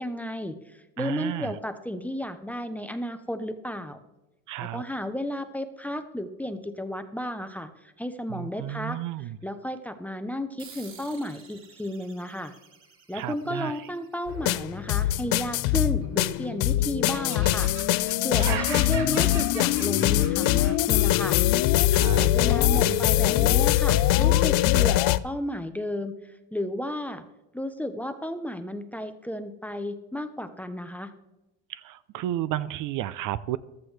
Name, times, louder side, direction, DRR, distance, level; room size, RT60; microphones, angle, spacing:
voice 1, 0.0-4.0 4.6-12.5 13.1-17.7 18.2-21.4 22.0-27.2 27.5-31.1, left 1 dB, 5° left, 9 dB, 0.6 m, -33 dB
voice 2, 1.0-1.5 4.5-4.8 8.3-9.4 13.1-13.7 18.4-18.6 21.9-22.3 22.7-23.2 31.7-33.6, right 13 dB, 55° right, 15 dB, 0.5 m, -32 dB
sound 1, 10.6-15.6, right 5 dB, 35° right, 2.3 m, -52 dB
sound 2, 14.3-25.2, left 15 dB, 60° left, 0.5 m, -22 dB
Laughter, 15.9-16.7 17.1-21.5, right 6 dB, 80° right, 2.9 m, -39 dB
14.5 x 13.0 x 3.3 m, 0.97 s
cardioid pair, 135°, 40 cm